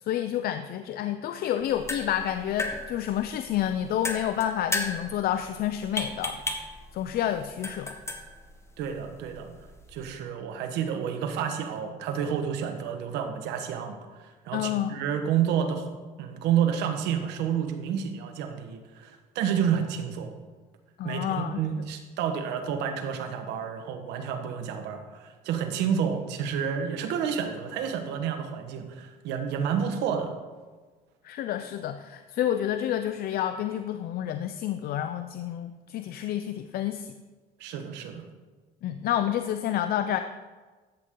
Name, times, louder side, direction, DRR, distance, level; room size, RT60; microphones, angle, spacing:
voice 1, 0.0-6.4 6.9-8.0 14.5-15.0 21.0-21.6 31.2-37.1 38.8-40.2, left 11 dB, 65° left, 9 dB, 0.5 m, -29 dB
sound 1, 1.6-10.2, left 2 dB, 15° left, 1.2 m, -36 dB
voice 2, 8.8-9.5 9.9-15.9 16.2-20.3 21.0-30.3 37.6-38.2, right 8 dB, 90° right, 6 dB, 1.3 m, -30 dB
13.0 x 8.1 x 3.8 m, 1.4 s
cardioid pair, 110°, 17 cm